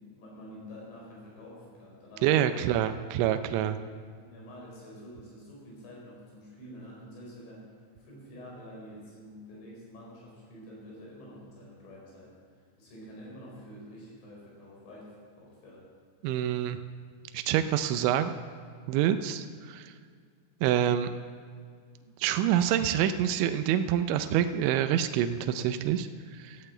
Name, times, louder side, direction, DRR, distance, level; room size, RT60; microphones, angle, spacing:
voice 1, 0.0-2.6 3.5-3.8 4.2-7.7 8.0-15.9, equal, 75° left, -4 dB, 6.9 m, -48 dB
voice 2, 2.2-3.7 16.2-16.8 17.3-18.3 18.9-19.9 20.6-21.1 22.2-26.1 26.3-26.6, right 10 dB, 85° right, 9 dB, 2.8 m, -26 dB
13.5 x 8.9 x 7.8 m, 2.1 s
omnidirectional pair, 5.7 m